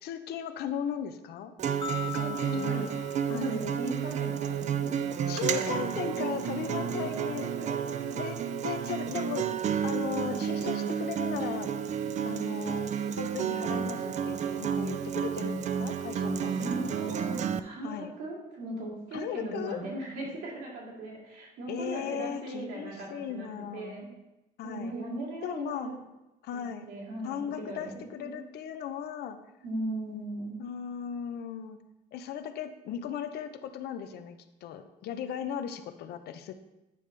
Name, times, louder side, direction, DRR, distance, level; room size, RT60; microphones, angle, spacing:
voice 1, 0.0-1.5 2.0-2.9 3.3-3.6 5.3-7.5 8.2-8.4 8.6-11.7 12.3-16.7 17.8-18.1 19.1-19.8 21.7-24.1 24.6-24.9 25.4-25.9 26.4-26.9 27.2-29.4 30.6-31.8 32.1-36.5, left 8 dB, 70° left, 9 dB, 0.6 m, -37 dB
Acoustic guitar, 1.6-17.6, right 8 dB, 45° right, 0.4 m, -31 dB
sound 1, 1.8-4.2, left 9 dB, 30° left, 0.4 m, -41 dB
voice 2, 2.2-2.8 3.3-5.8 6.7-8.2 16.3-24.1 24.6-25.9 26.5-28.4 29.6-30.6, right 1 dB, 85° right, -3 dB, 2.5 m, -38 dB
9.3 x 5.2 x 3.3 m, 0.99 s
cardioid pair, 110°, 17 cm